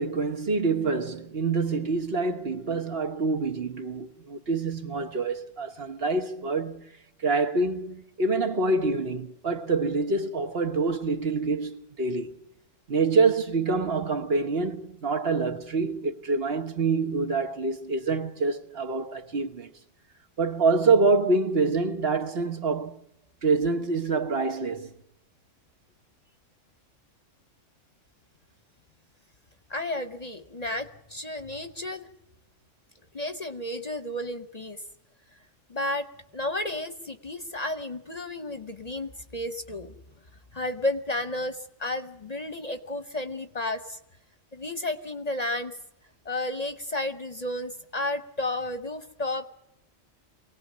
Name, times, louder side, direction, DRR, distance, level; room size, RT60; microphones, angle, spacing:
voice 1, 0.0-6.9 7.2-12.3 12.9-19.7 20.4-23.0 23.4-24.9, right 3 dB, 55° right, 1.4 m, -26 dB
voice 2, 29.7-32.1 33.1-34.8 35.7-36.1 36.3-39.9 40.5-44.0 44.5-45.8 46.2-49.5, left 1 dB, 35° left, 0.9 m, -32 dB
24.5 x 18.0 x 7.4 m
omnidirectional pair, 1.3 m